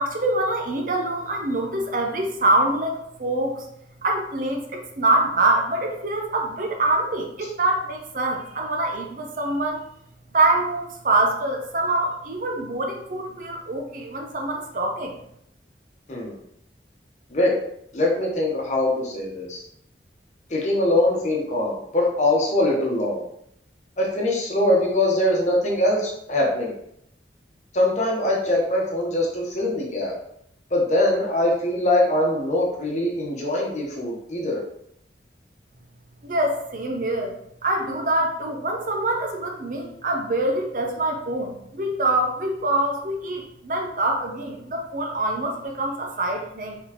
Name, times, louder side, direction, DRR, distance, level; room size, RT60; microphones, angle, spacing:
voice 1, 0.0-2.9 3.2-3.7 4.0-9.8 10.3-15.1 36.2-37.3 37.6-46.8, right 2 dB, 50° right, 2 dB, 0.7 m, -25 dB
voice 2, 17.9-19.6 20.5-23.2 24.0-26.7 27.7-30.1 30.7-34.6, left 1 dB, 40° left, -2 dB, 1.0 m, -22 dB
4.0 x 3.8 x 2.9 m, 0.74 s
head